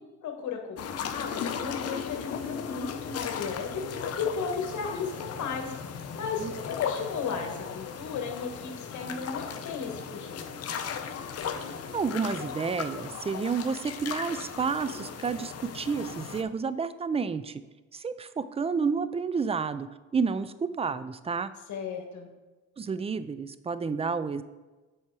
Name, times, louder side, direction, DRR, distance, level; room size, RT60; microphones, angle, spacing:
voice 1, 0.2-10.6 21.7-22.3, left 5 dB, 70° left, 2 dB, 1.4 m, -35 dB
sound 1, 0.8-16.4, left 7 dB, 55° left, 0.7 m, -37 dB
voice 2, 11.9-17.6 17.9-19.9 20.1-21.5 22.8-24.4, right 5 dB, 20° right, 14 dB, 0.4 m, -30 dB
7.3 x 4.8 x 4.7 m, 1.2 s
cardioid pair, 90°, 30 cm